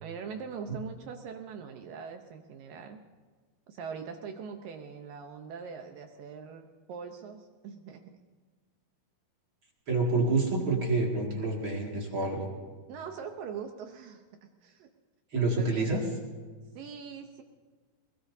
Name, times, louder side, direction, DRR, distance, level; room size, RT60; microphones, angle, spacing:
voice 1, 0.0-3.0 3.7-8.1 12.9-14.2 14.6-14.9 15.6-15.9 16.7-17.4, right 6 dB, 75° right, 5 dB, 2.2 m, -42 dB
voice 2, 9.9-12.5 15.3-16.0, right 3 dB, 40° right, -1 dB, 2.3 m, -28 dB
21.5 x 21.0 x 2.7 m, 1.5 s
omnidirectional pair, 4.8 m